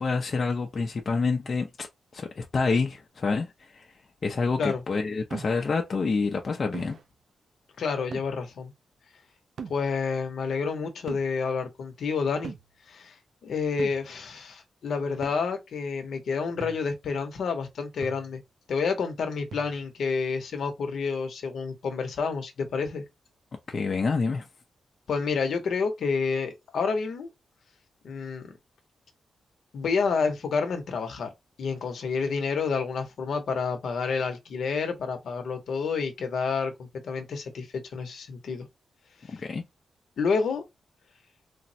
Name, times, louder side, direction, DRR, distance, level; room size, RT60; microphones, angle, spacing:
voice 1, 0.0-1.9 2.1-3.9 4.2-7.0 23.7-24.4 39.3-39.6, left 4 dB, 40° left, 0.4 m, -27 dB
sound 1, 5.3-5.8 6.7-7.0 8.1-8.4 9.6-9.9 11.1-11.3 12.4-12.7 13.8-14.1 15.2-15.4 16.6-16.9 18.0-18.4 19.5-19.9, right 6 dB, 55° right, 0.4 m, -40 dB
voice 2, 7.8-8.7 9.6-12.5 12.9-13.1 13.4-18.4 18.7-23.0 25.1-27.3 28.0-28.6 29.7-31.3 31.6-38.7 39.2-39.4 40.2-40.6, left 5 dB, 70° left, 0.7 m, -29 dB
3.3 x 2.0 x 2.6 m
wide cardioid pair, 155°, 0 cm